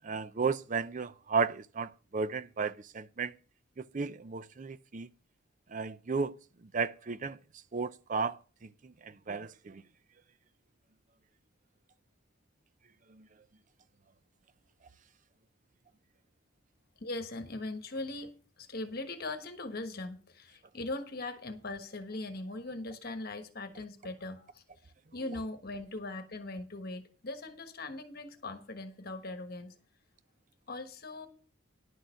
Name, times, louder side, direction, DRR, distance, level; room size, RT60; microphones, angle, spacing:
voice 1, 0.0-3.4 3.8-5.1 5.7-6.4 6.6-7.4 7.7-9.8 13.1-13.3, right 5 dB, 40° right, 0.5 m, -34 dB
voice 2, 17.0-18.3 18.6-29.7 30.7-31.3, left 2 dB, 50° left, 1.3 m, -40 dB
11.0 x 6.5 x 5.8 m
head